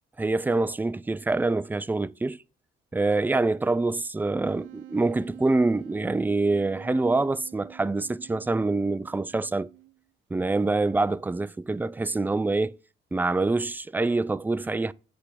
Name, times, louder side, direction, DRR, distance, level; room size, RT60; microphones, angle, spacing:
voice 1, 0.2-2.4 2.9-9.7 10.3-12.8 13.1-14.9, right 3 dB, 10° right, 0.3 m, -25 dB
Wind instrument woodwind instrument, 4.4-10.1, right 16 dB, 80° right, 0.5 m, -48 dB
8.2 x 3.4 x 6.5 m
cardioid pair, 90°, 20 cm